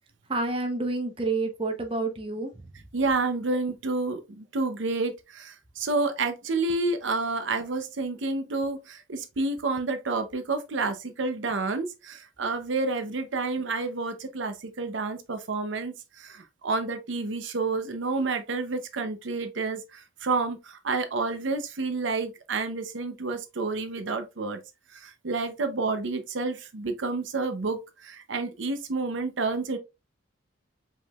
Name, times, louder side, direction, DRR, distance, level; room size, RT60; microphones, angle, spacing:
voice 1, 0.3-2.5, right 3 dB, 30° right, 0.7 m, -28 dB
voice 2, 2.9-24.6 24.9-29.8, right 3 dB, 75° right, 0.7 m, -29 dB
5.1 x 3.7 x 2.3 m
head